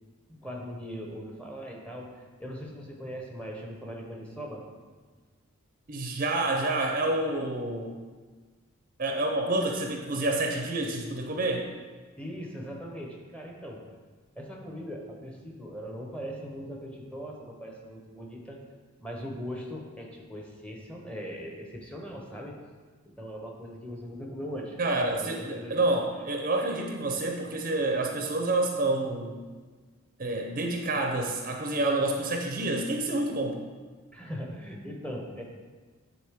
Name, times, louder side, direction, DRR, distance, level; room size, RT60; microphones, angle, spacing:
voice 1, 0.3-4.7 12.2-13.8 14.3-18.6 19.0-22.6 23.1-24.8 25.1-25.9 34.1-35.4, equal, 5° left, -1 dB, 0.8 m, -40 dB
voice 2, 5.9-8.0 9.0-11.7 24.8-29.4 30.2-33.6, right 2 dB, 40° right, 2 dB, 0.5 m, -28 dB
9.3 x 4.0 x 3.5 m, 1.4 s
head